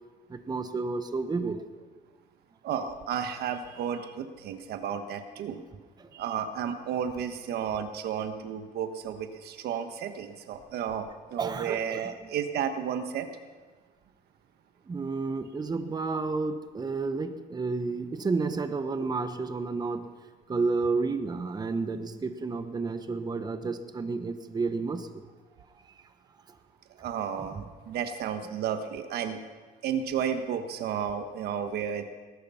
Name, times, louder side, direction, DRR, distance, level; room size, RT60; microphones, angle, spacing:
voice 1, 0.3-1.6 6.0-6.1 11.4-12.1 14.9-20.1 20.5-25.2 25.8-26.0 26.5-26.6, right 4 dB, 25° right, 9 dB, 1.0 m, -31 dB
voice 2, 2.6-5.6 6.1-13.3 27.0-29.4 29.8-32.0, right 8 dB, 70° right, 8 dB, 1.4 m, -32 dB
19.5 x 11.5 x 5.7 m, 1.4 s
cardioid pair, 110°, 17 cm